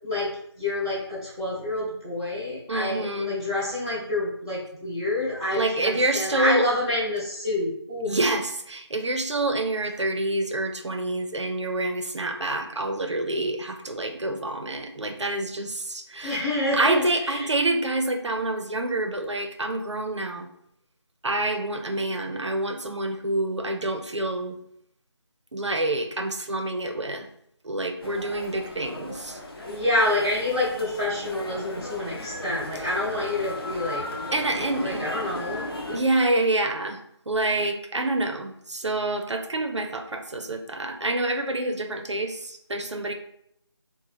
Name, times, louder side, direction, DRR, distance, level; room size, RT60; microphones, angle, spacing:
voice 1, 0.6-8.2 16.2-17.5 29.6-34.0 34.5-35.7, left 1 dB, 10° left, -11 dB, 0.6 m, -28 dB
voice 2, 2.7-3.4 5.5-6.6 8.1-16.4 16.7-20.5 21.2-24.6 25.5-27.3 27.6-29.4 34.3-35.1 35.9-37.0 37.3-43.1, right 2 dB, 90° right, 5 dB, 0.5 m, -27 dB
sound 1, 28.0-36.0, left 1 dB, 55° left, 0.7 m, -36 dB
3.0 x 2.1 x 4.1 m, 0.73 s
figure-of-eight pair, 165°, 14 cm